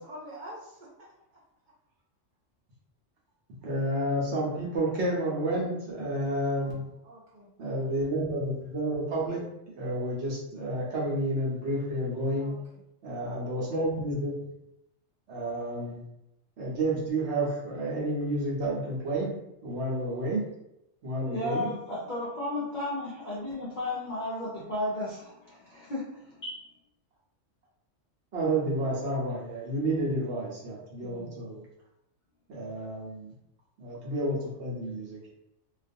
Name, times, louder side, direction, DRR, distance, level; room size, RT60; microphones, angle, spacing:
voice 1, 0.0-1.4 6.5-6.7 7.0-7.5 12.4-12.6, equal, 45° right, -6 dB, 0.8 m, -46 dB
voice 2, 3.6-6.8 7.6-9.4 9.8-12.5 13.0-14.3 15.3-16.0 16.6-19.3 19.6-20.5 21.0-21.7 28.3-31.7 32.5-33.3 33.8-35.3, right 1 dB, 65° right, -5 dB, 1.0 m, -30 dB
voice 3, 21.2-26.7 31.0-31.3, left 1 dB, 50° left, -6 dB, 0.6 m, -34 dB
2.5 x 2.3 x 2.5 m, 0.83 s
omnidirectional pair, 1.3 m